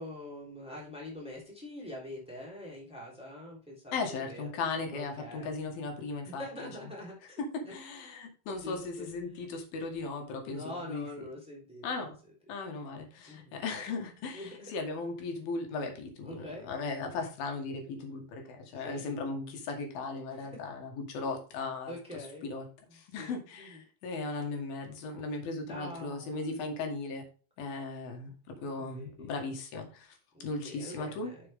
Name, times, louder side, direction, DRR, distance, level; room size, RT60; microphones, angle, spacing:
voice 1, 0.0-4.5 4.9-5.5 6.2-7.7 8.6-9.1 10.5-12.0 13.2-13.5 14.3-14.7 16.2-16.7 18.8-19.0 20.3-20.5 21.9-22.5 22.9-23.8 25.6-26.6 28.2-28.7 29.0-29.5 30.3-31.4, left 1 dB, ahead, -3 dB, 3.1 m, -45 dB
voice 2, 3.9-6.7 7.4-11.1 11.8-12.1 12.5-21.9 22.4-22.7 22.9-27.2 27.6-31.3, left 3 dB, 85° left, 3 dB, 3.5 m, -37 dB
7.4 x 6.8 x 3.6 m, 0.38 s
omnidirectional pair, 4.1 m